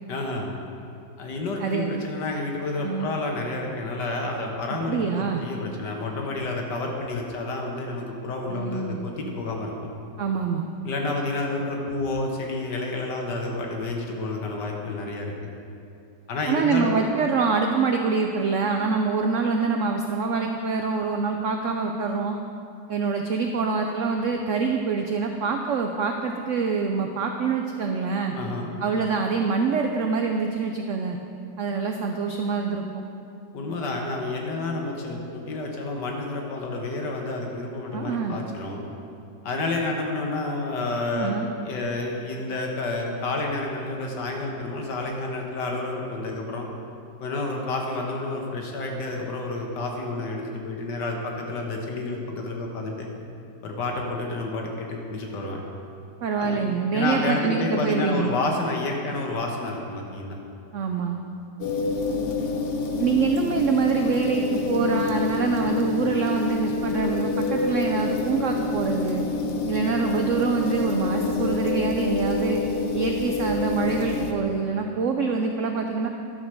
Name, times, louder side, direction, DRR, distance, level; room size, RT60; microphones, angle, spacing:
voice 1, 0.1-0.6 1.2-9.9 10.8-15.3 16.3-17.0 28.3-28.7 33.5-38.8 39.4-41.4 41.6-46.7 47.2-53.1 53.6-55.6 56.4-56.6 56.9-60.4, left 2 dB, 70° left, 1 dB, 1.8 m, -30 dB
voice 2, 1.6-2.1 2.8-3.2 4.9-5.4 8.5-9.0 10.2-10.7 16.5-22.4 22.9-28.4 28.8-31.2 31.6-33.0 37.9-38.4 41.1-41.5 56.2-58.3 60.7-61.2 63.0-69.3 69.7-72.6 72.9-76.1, right 5 dB, 80° right, 3 dB, 0.7 m, -25 dB
sound 1, 61.6-74.3, left 3 dB, 90° left, 0.5 m, -27 dB
12.0 x 5.1 x 6.2 m, 2.6 s
omnidirectional pair, 1.9 m